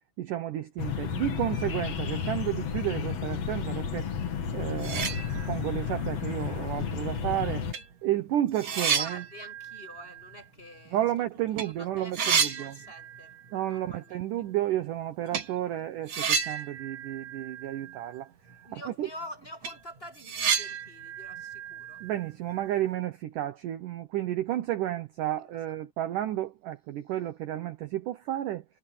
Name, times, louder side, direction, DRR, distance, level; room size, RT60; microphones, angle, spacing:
voice 1, 0.2-4.1 4.5-7.6 8.0-9.2 10.9-12.8 13.5-18.3 18.7-19.1 22.0-28.6, right 13 dB, 75° right, 1.9 m, -32 dB
sound 1, 0.8-7.7, left 7 dB, 50° left, 2.4 m, -32 dB
sound 2, 4.4-4.5 4.7-5.8 6.2-6.3 7.2-7.3 7.7-11.2 11.4-11.7 11.9-13.5 13.7-13.8 15.3-15.5 16.1-18.2 18.5-18.6 19.0-19.1 19.4-22.6, right 7 dB, 45° right, 2.6 m, -32 dB
voice 2, 8.7-11.1 11.6-14.2 15.4-15.9 18.6-22.0 25.4-25.5, left 1 dB, 10° left, 7.7 m, -47 dB
omnidirectional pair, 5.1 m